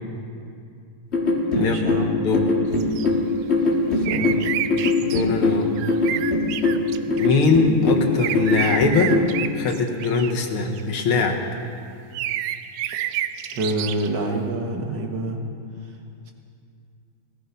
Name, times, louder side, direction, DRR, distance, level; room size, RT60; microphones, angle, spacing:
sound 1, 1.1-9.4, left 2 dB, 35° left, 2.1 m, -22 dB
voice 1, 1.5-2.1 3.9-4.4 13.5-15.4, right 2 dB, 60° right, 2 dB, 2.0 m, -27 dB
sound 2, 2.8-3.1 4.0-5.2 5.8-7.5 8.2-10.8 12.1-14.1, right 12 dB, 80° right, 1.4 m, -29 dB
voice 2, 5.0-5.7 7.2-9.2 9.5-11.4, left 4 dB, 85° left, 3 dB, 2.2 m, -21 dB
18.0 x 14.5 x 5.3 m, 2.4 s
omnidirectional pair, 2.2 m